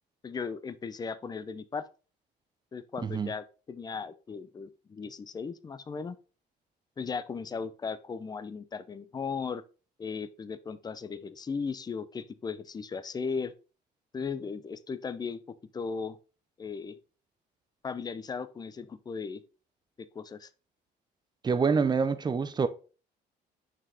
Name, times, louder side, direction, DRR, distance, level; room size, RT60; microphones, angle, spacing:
voice 1, 0.2-1.9 2.7-6.2 7.0-9.6 10.0-13.5 14.1-15.4 15.7-16.2 16.6-17.0 17.8-19.4 20.0-20.5, left 5 dB, 25° left, 0.5 m, -37 dB
voice 2, 21.4-22.7, right 5 dB, 25° right, 0.6 m, -26 dB
6.3 x 4.5 x 3.4 m
cardioid pair, 110°, 17 cm